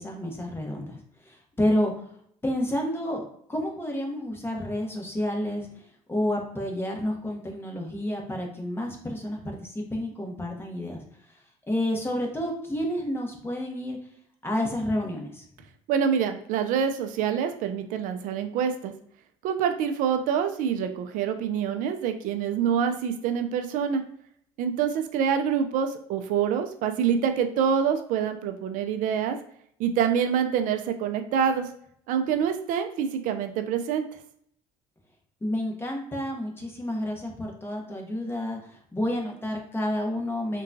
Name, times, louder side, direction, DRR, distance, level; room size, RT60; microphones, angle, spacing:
voice 1, 0.0-1.9 2.4-3.2 3.5-5.7 6.1-11.0 11.7-14.0 14.4-15.4 35.4-40.6, left 1 dB, 15° left, 1 dB, 0.9 m, -30 dB
voice 2, 15.9-18.9 19.4-24.0 24.6-29.4 29.8-31.7 32.1-34.1, right 7 dB, 70° right, 7 dB, 0.4 m, -26 dB
3.7 x 2.2 x 2.6 m, 0.68 s
supercardioid pair, 85°, 14 cm